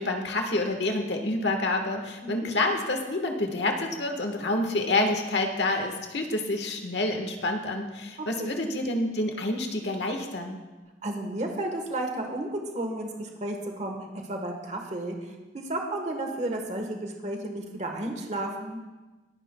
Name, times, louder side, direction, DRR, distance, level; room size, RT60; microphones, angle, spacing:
voice 1, 0.0-10.6, left 2 dB, 70° left, 4 dB, 1.4 m, -28 dB
voice 2, 11.0-15.2 15.5-18.8, right 1 dB, 40° right, 3 dB, 1.2 m, -32 dB
22.0 x 9.7 x 2.2 m, 1.2 s
head